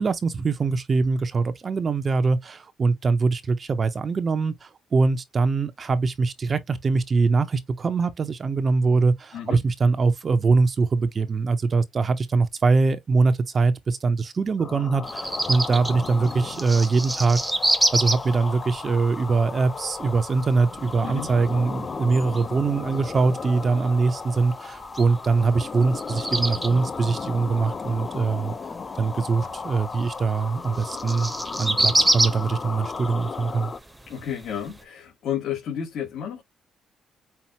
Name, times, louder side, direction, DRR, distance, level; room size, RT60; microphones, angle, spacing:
voice 1, 0.0-17.4 17.9-28.5 29.0-31.3 31.6-33.7, right 4 dB, 40° right, 0.7 m, -23 dB
voice 2, 9.3-9.6 21.0-21.3 34.1-36.4, left 9 dB, 70° left, 1.9 m, -31 dB
sound 1, 14.6-33.8, left 5 dB, 40° left, 0.7 m, -35 dB
sound 2, 15.0-34.8, right 1 dB, 10° right, 0.9 m, -30 dB
5.7 x 2.5 x 2.9 m
cardioid pair, 90°, 0 cm